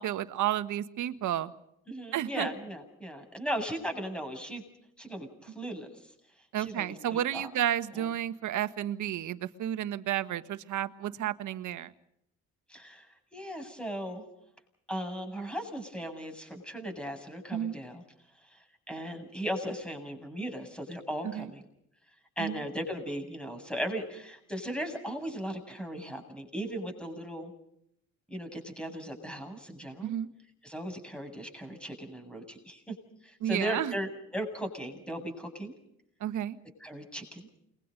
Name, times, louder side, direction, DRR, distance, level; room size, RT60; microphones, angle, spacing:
voice 1, 0.0-1.5 2.1-2.5 6.5-11.9 17.5-17.8 21.2-21.5 22.4-22.6 30.0-30.3 33.4-33.9 36.2-36.6, right 11 dB, 75° right, 12 dB, 1.6 m, -32 dB
voice 2, 1.9-4.6 5.0-5.9 6.6-7.5 7.9-8.0 12.7-13.1 13.3-14.2 14.9-18.0 18.5-18.6 18.9-21.6 22.4-27.5 28.3-30.1 30.6-32.9 33.2-35.7 36.8-37.4, equal, 5° left, 5 dB, 7.8 m, -37 dB
29.0 x 22.5 x 5.3 m, 0.75 s
cardioid pair, 90°, 30 cm